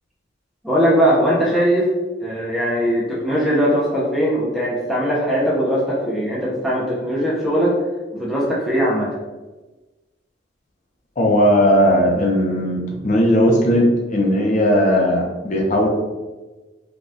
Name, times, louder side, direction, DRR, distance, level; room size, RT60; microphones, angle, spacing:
voice 1, 0.6-1.9 2.2-7.8 8.1-9.1, equal, ahead, -7 dB, 0.5 m, -20 dB
voice 2, 11.2-15.9, equal, 40° left, -1 dB, 0.6 m, -17 dB
3.3 x 2.2 x 2.6 m, 1.2 s
head